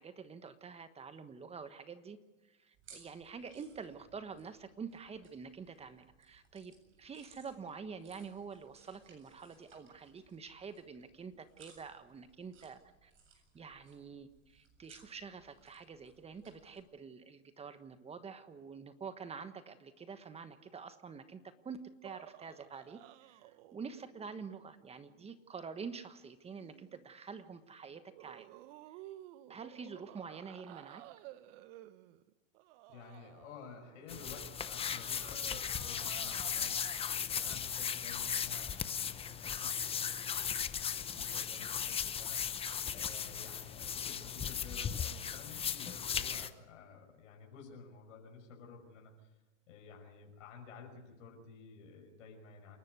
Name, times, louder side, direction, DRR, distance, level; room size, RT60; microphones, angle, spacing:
voice 1, 0.0-2.2 2.4-6.7 7.0-13.1 13.5-21.4 21.6-28.5 29.5-31.0, right 5 dB, 15° right, 10 dB, 1.3 m, -47 dB
sound 1, 2.7-16.8, right 5 dB, 30° right, 8.0 m, -64 dB
sound 2, 22.0-25.5 26.6-27.1 28.1-37.1, right 15 dB, 50° right, 1.2 m, -54 dB
voice 2, 32.9-49.3 49.7-52.8, left 5 dB, 75° left, 0 dB, 6.1 m, -53 dB
sound 3, 34.1-46.5, left 7 dB, 15° left, 0.8 m, -37 dB
29.0 x 12.0 x 9.5 m, 1.1 s
hypercardioid pair, 125°, 39 cm